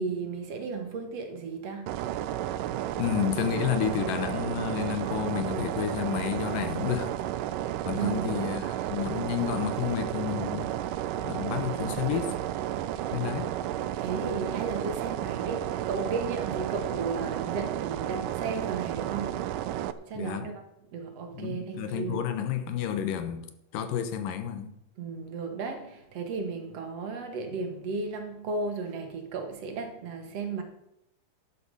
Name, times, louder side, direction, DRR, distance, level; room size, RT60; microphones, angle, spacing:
voice 1, 0.0-2.1 7.9-8.4 14.0-19.6 20.1-20.6 20.9-22.2 25.0-30.6, right 4 dB, 55° right, 2.6 m, -34 dB
sound 1, 1.9-19.9, right 12 dB, 85° right, 2.2 m, -32 dB
voice 2, 3.0-7.1 7.9-10.7 11.2-12.4 13.1-13.5 20.1-20.5 21.3-23.5 23.7-24.7, left 9 dB, 90° left, 2.8 m, -30 dB
11.5 x 10.0 x 5.5 m
omnidirectional pair, 3.7 m